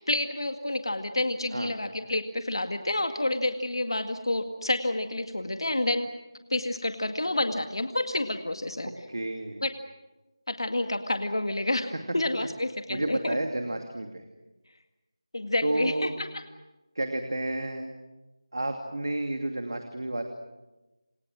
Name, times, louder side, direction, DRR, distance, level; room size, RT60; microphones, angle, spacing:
voice 1, 0.0-6.1 6.5-8.9 9.6-9.7 10.5-13.4 15.3-16.3, left 1 dB, 60° left, 7 dB, 2.0 m, -29 dB
voice 2, 9.1-9.6 12.9-14.2 15.6-16.1 16.9-17.9 18.5-20.2, right 1 dB, 50° right, 5 dB, 2.6 m, -31 dB
28.5 x 28.0 x 6.3 m, 1.1 s
figure-of-eight pair, 180°, 3 cm